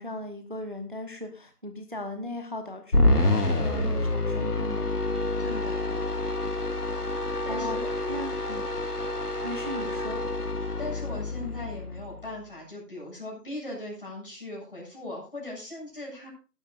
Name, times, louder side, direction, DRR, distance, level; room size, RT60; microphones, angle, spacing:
voice 1, 0.0-5.0 7.5-7.8 8.1-8.3 9.4-10.2, left 1 dB, 30° right, 7 dB, 1.1 m, -37 dB
sound 1, 2.9-12.3, left 2 dB, 70° left, 2.3 m, -27 dB
voice 2, 5.4-6.3 7.4-7.9 8.5-8.7 10.6-16.3, left 2 dB, 35° left, -2 dB, 7.6 m, -39 dB
18.0 x 12.0 x 2.5 m, 0.33 s
figure-of-eight pair, 175°, 48 cm